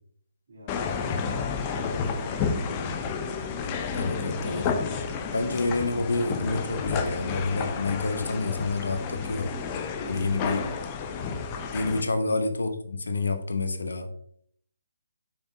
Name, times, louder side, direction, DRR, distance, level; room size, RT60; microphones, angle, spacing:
voice 1, 0.5-0.9 1.8-3.2 9.5-10.8 12.0-12.5, equal, 55° right, -3 dB, 3.0 m, -44 dB
sound 1, 0.7-12.0, left 5 dB, 25° left, 0.7 m, -31 dB
voice 2, 3.9-4.8 5.3-9.5 10.1-10.6 11.7-14.1, left 3 dB, 70° left, 7 dB, 1.0 m, -28 dB
7.0 x 5.8 x 2.7 m, 0.64 s
figure-of-eight pair, 145°, 0 cm